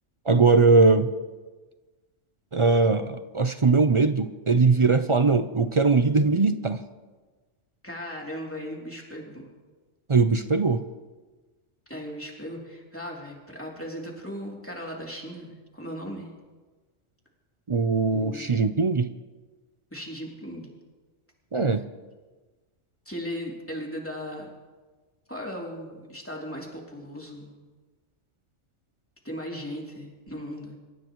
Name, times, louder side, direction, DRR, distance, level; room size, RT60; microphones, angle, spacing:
voice 1, 0.3-1.1 2.5-6.8 10.1-10.8 17.7-19.1 21.5-21.8, right 4 dB, 40° right, 10 dB, 0.4 m, -20 dB
voice 2, 7.8-9.5 11.9-16.3 18.1-18.8 19.9-20.7 23.0-24.5 25.3-27.5 29.2-30.8, equal, 10° left, -2 dB, 2.9 m, -37 dB
27.0 x 15.0 x 3.1 m, 1.3 s
omnidirectional pair, 1.3 m